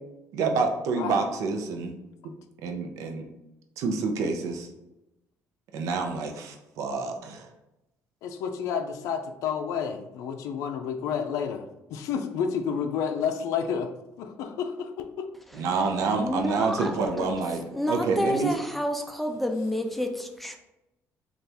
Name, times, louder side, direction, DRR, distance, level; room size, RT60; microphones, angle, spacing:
voice 1, 0.3-1.9 2.2-2.3 2.6-3.3 3.8-4.7 5.7-7.5 15.5-18.5, right 4 dB, 80° right, 4 dB, 0.5 m, -28 dB
voice 2, 8.2-11.6 11.9-13.9 14.2-15.3, left 7 dB, 85° left, 6 dB, 0.4 m, -30 dB
voice 3, 16.1-16.9 17.2-17.3 17.7-20.6, left 1 dB, ahead, 4 dB, 0.4 m, -29 dB
3.3 x 2.4 x 4.2 m, 0.93 s
cardioid pair, 120°, 5 cm